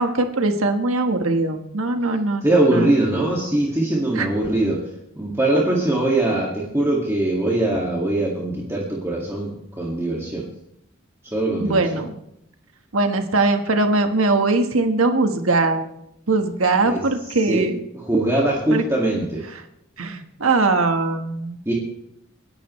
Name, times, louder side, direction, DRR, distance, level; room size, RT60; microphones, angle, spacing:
voice 1, 0.0-2.4 2.7-2.9 4.1-4.3 11.6-12.1 12.9-15.9 16.3-17.8 18.7-18.8 20.0-21.6, right 3 dB, 90° right, 6 dB, 1.4 m, -21 dB
voice 2, 2.4-4.9 5.2-10.5 11.2-11.8 16.8-17.0 17.4-17.7 17.9-19.5 21.7-21.8, right 1 dB, 15° right, -3 dB, 2.1 m, -21 dB
27.5 x 11.0 x 3.2 m, 0.79 s
head